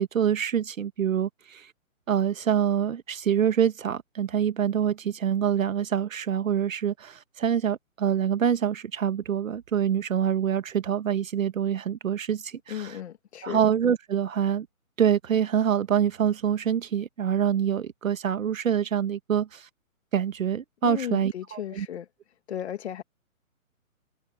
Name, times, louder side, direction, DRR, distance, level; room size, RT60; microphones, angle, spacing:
voice 1, 0.0-1.7 2.1-13.0 13.4-14.7 15.0-19.7 20.1-21.9, right 9 dB, 65° right, 1.6 m, -26 dB
voice 2, 12.7-13.6 20.8-22.1 22.5-23.0, left 10 dB, 50° left, 2.4 m, -35 dB
hypercardioid pair, 145°, 42 cm